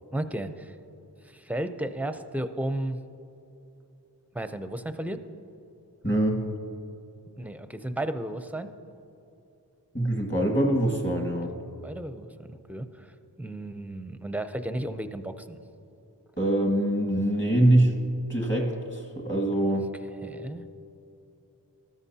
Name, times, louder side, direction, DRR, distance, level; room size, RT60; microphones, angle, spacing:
voice 1, 0.1-0.7 1.2-3.0 4.3-5.2 7.3-8.7 11.8-15.6 20.2-20.6, right 1 dB, 5° right, 9 dB, 0.5 m, -34 dB
voice 2, 6.0-6.4 9.9-11.5 16.4-17.9 18.3-19.9, right 1 dB, 30° left, 1 dB, 1.7 m, -24 dB
13.5 x 13.0 x 2.8 m, 2.8 s
wide cardioid pair, 40°, 40 cm